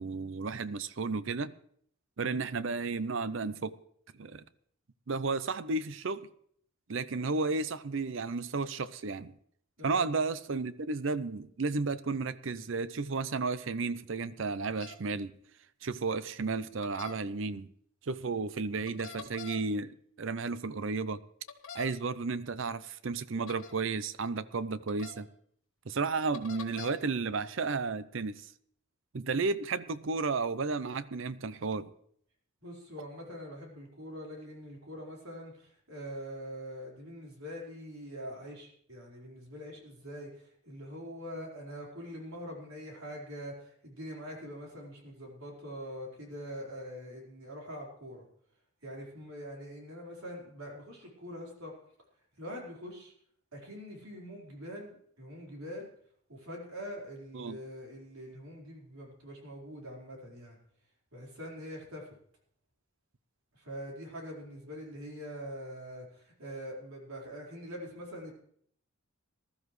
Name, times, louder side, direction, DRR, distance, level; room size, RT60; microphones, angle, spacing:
voice 1, 0.0-1.5 2.2-3.8 4.2-4.4 5.1-6.3 6.9-9.3 9.8-15.3 15.8-17.7 18.0-21.2 21.7-25.3 25.9-28.5 29.1-31.9 57.3-57.6, right 4 dB, 65° right, 0.6 m, -33 dB
voice 2, 9.8-10.1 32.6-48.2 48.8-51.7 52.4-53.1 53.5-55.9 56.3-60.6 61.1-62.1 63.5-68.3, equal, 85° right, 4.5 m, -44 dB
sound 1, 14.6-15.0 16.8-17.1 18.9-19.6 21.5-21.9 23.5-23.7 24.9-25.1 26.3-26.9, left 5 dB, 70° left, 1.4 m, -44 dB
19.5 x 13.0 x 3.2 m
head